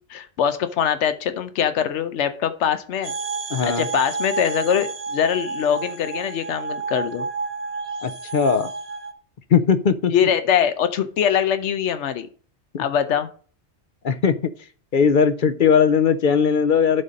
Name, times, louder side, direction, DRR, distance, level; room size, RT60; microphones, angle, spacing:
voice 1, 0.1-3.1 3.6-7.3 10.1-12.3 12.8-13.3, left 8 dB, 85° left, 10 dB, 1.0 m, -22 dB
sound 1, 3.0-9.1, right 4 dB, 65° right, 1.1 m, -30 dB
voice 2, 3.5-3.9 8.0-8.7 9.5-10.1 12.7-12.8 14.0-14.4 14.9-17.0, left 6 dB, 55° left, 11 dB, 0.7 m, -19 dB
11.0 x 4.1 x 5.1 m, 0.42 s
omnidirectional pair, 1.2 m